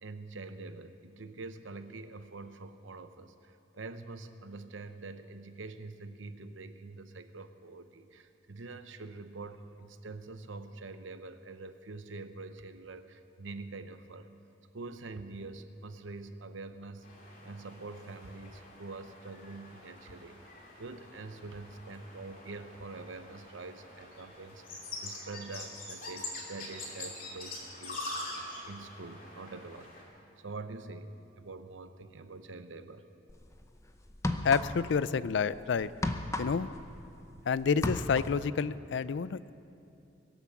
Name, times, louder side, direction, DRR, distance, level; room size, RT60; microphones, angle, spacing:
voice 1, 0.0-14.3 14.7-17.1 17.4-20.4 20.8-28.4 28.6-29.9 30.4-33.1, right 3 dB, 90° right, 10 dB, 0.8 m, -45 dB
sound 1, 17.0-30.0, left 2 dB, 45° left, 2.8 m, -45 dB
sound 2, 33.3-33.5 34.1-35.0 35.3-37.4 37.7-38.4, left 1 dB, 15° left, 0.6 m, -34 dB
voice 2, 34.4-35.9 36.4-36.7 37.5-39.5, left 6 dB, 70° left, 17 dB, 0.4 m, -29 dB
23.0 x 8.3 x 7.1 m, 2.7 s
head